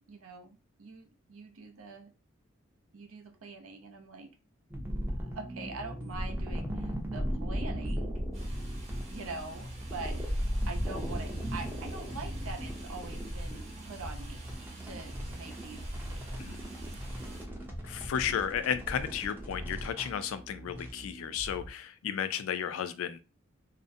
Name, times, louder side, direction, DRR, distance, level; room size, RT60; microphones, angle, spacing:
voice 1, 0.1-2.1 2.9-4.3 5.2-8.2 9.1-10.2 10.7-16.6, right 3 dB, 90° right, 4 dB, 0.6 m, -44 dB
sound 1, 4.7-21.7, equal, 10° right, 0.4 m, -37 dB
sound 2, 8.3-17.5, right 2 dB, 35° right, 0.8 m, -48 dB
voice 2, 17.8-23.2, left 8 dB, 80° left, 11 dB, 0.3 m, -33 dB
2.4 x 2.0 x 2.6 m, 0.31 s
head